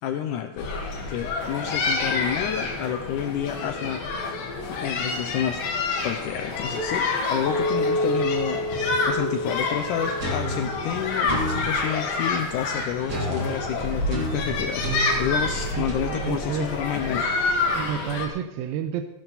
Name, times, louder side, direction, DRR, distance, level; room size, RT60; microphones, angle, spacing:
voice 1, 0.0-0.7 1.1-4.0 4.4-5.6 6.0-17.3, left 9 dB, 90° left, 7 dB, 1.8 m, -30 dB
sound 1, 0.6-18.3, left 3 dB, 75° left, 3.4 m, -28 dB
Chink clink, 7.4-11.7, left 1 dB, 15° right, 3.4 m, -29 dB
sound 2, 10.2-11.8 13.1-15.9, right 1 dB, 35° right, 2.6 m, -31 dB
voice 2, 15.7-16.7 17.8-19.1, right 9 dB, 85° right, 9 dB, 2.4 m, -30 dB
15.5 x 11.5 x 4.1 m, 0.94 s
omnidirectional pair, 4.3 m